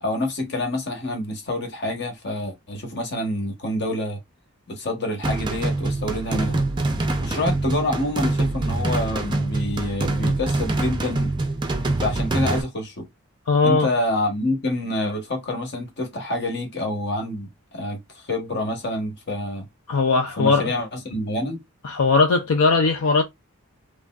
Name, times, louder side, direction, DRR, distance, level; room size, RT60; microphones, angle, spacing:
voice 1, 0.0-4.2 4.7-6.7 7.2-11.3 12.0-13.1 13.6-19.7 20.4-21.6, left 1 dB, 50° left, 1.0 m, -27 dB
sound 1, 5.2-12.6, right 2 dB, 20° right, 0.4 m, -25 dB
voice 2, 13.5-13.9 19.9-20.7 21.8-23.2, left 4 dB, 75° left, 0.5 m, -19 dB
3.1 x 2.6 x 2.2 m
head